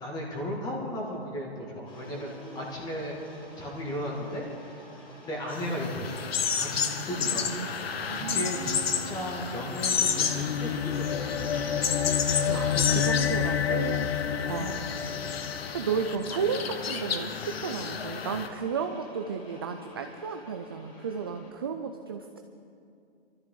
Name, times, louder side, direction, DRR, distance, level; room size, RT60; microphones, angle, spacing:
voice 1, 0.0-3.2 3.6-4.8 5.2-7.7 8.1-11.5 12.3-13.1 14.4-14.9, left 1 dB, 10° left, -2 dB, 2.1 m, -35 dB
sound 1, 1.8-21.5, equal, 35° left, 4.0 m, -47 dB
sound 2, 5.5-18.5, left 7 dB, 70° left, 1.2 m, -32 dB
voice 2, 7.4-7.7 8.1-8.5 12.5-14.1 14.5-14.8 15.7-22.4, right 6 dB, 25° right, 5 dB, 0.4 m, -33 dB
sound 3, 10.0-16.7, left 9 dB, 85° left, 0.8 m, -30 dB
23.0 x 13.5 x 3.9 m, 2.5 s
hypercardioid pair, 155°, 31 cm